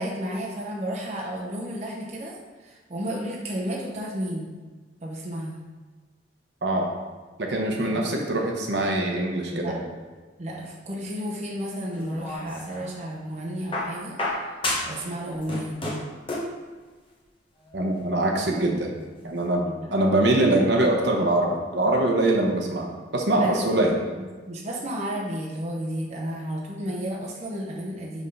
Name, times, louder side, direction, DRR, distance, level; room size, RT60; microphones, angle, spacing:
voice 1, 0.0-4.5 5.0-5.6 7.8-8.1 9.5-9.8 10.4-14.5 14.8-15.9 19.6-19.9 23.4-23.8 24.2-28.3, equal, 35° right, -3 dB, 0.8 m, -32 dB
voice 2, 7.4-9.8 17.7-18.9 19.2-19.6 19.9-23.9, right 1 dB, 65° right, 1 dB, 0.9 m, -23 dB
sound 1, 11.9-12.9 13.7-15.1 15.3-16.6 17.7-17.8, left 1 dB, 30° left, 1.0 m, -30 dB
5.4 x 3.6 x 5.5 m, 1.4 s
head